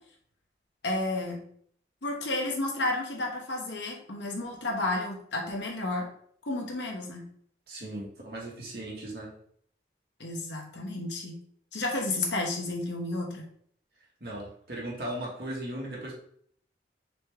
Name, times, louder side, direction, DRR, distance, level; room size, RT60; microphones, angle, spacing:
voice 1, 0.8-1.5 2.0-6.1 6.5-7.3 10.2-11.4 11.7-13.5, left 2 dB, 85° left, 1 dB, 1.0 m, -31 dB
voice 2, 7.7-9.3 14.2-16.2, right 1 dB, 60° right, -3 dB, 1.4 m, -37 dB
4.1 x 3.4 x 3.4 m, 0.62 s
head